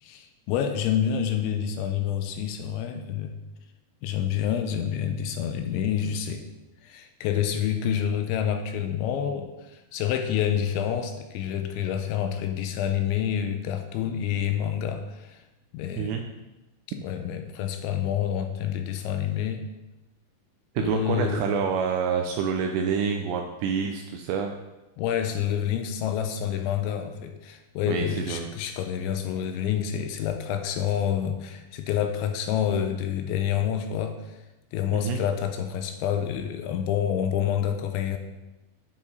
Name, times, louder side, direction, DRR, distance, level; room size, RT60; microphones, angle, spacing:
voice 1, 0.0-3.4 4.0-6.4 6.8-15.4 15.7-16.2 16.9-19.6 20.8-21.5 25.0-34.4 34.7-38.2, left 9 dB, 80° left, 6 dB, 2.8 m, -28 dB
voice 2, 20.8-24.5 27.9-28.5 34.9-35.2, right 6 dB, 85° right, 4 dB, 2.5 m, -27 dB
9.4 x 7.9 x 4.2 m, 1.0 s
omnidirectional pair, 5.5 m